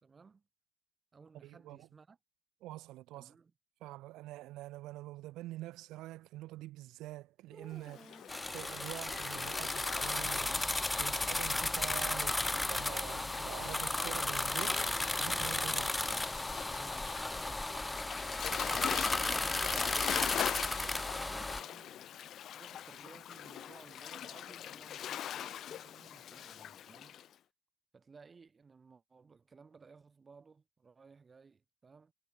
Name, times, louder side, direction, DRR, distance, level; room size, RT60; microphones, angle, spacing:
voice 1, 0.0-0.4 1.1-2.2 3.1-3.5 16.7-17.6 18.0-20.4 20.7-22.0 22.5-27.3 27.9-32.1, right 5 dB, 25° right, 4.7 m, -58 dB
voice 2, 1.4-1.9 2.6-3.4 3.8-14.9 15.2-15.9, right 17 dB, 70° right, 4.6 m, -46 dB
sound 1, 7.5-9.1 10.7-11.8 14.7-15.5 18.7-20.4, right 1 dB, 5° right, 4.4 m, -57 dB
Waves surf, 7.8-27.3, left 10 dB, 50° left, 1.2 m, -43 dB
sound 2, 8.3-21.6, left 2 dB, 10° left, 0.7 m, -34 dB
cardioid pair, 110°, 0 cm